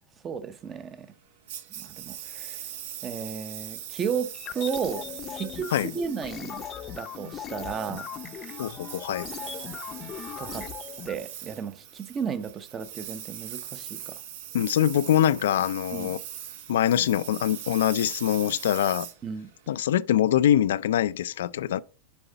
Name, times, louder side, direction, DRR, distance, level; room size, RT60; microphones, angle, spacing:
voice 1, 0.2-1.1 1.8-2.6 3.0-5.1 5.3-6.7 7.0-8.1 10.4-10.7 11.0-14.2 15.9-16.2 19.2-19.5, right 7 dB, 25° right, 0.7 m, -34 dB
Engine, 1.5-19.9, right 11 dB, 70° right, 0.8 m, -41 dB
sound 1, 4.3-11.1, left 9 dB, 30° left, 0.6 m, -39 dB
voice 2, 8.6-9.3 14.5-16.2 16.7-19.1 19.7-21.8, left 11 dB, 85° left, 0.4 m, -24 dB
7.0 x 5.6 x 3.9 m
supercardioid pair, 140°, 0 cm